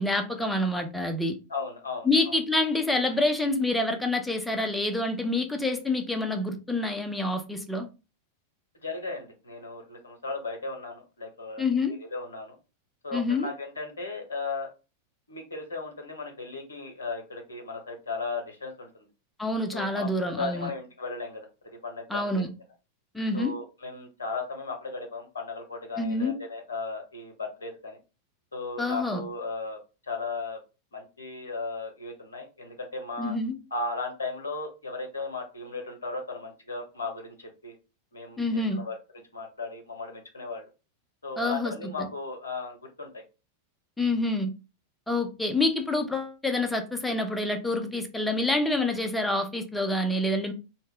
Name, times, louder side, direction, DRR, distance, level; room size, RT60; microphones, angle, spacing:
voice 1, 0.0-1.3 2.0-7.9 11.6-11.9 13.1-13.5 19.4-20.7 22.1-22.5 23.1-23.5 26.0-26.4 28.8-29.2 33.2-33.6 38.4-38.8 41.4-41.7 42.0-42.1 44.0-44.5 45.1-50.5, left 2 dB, 5° left, 0.4 m, -27 dB
voice 2, 1.5-2.3 8.8-11.6 12.1-12.6 13.0-14.7 15.3-19.1 19.7-21.5 21.8-22.4 23.3-28.0 28.5-29.8 30.0-30.6 30.9-33.3 33.7-37.8 38.1-39.0 39.3-40.7 41.2-43.2 45.1-45.2, left 3 dB, 70° left, 0.6 m, -36 dB
2.1 x 2.0 x 3.4 m
figure-of-eight pair, 90°, 0 cm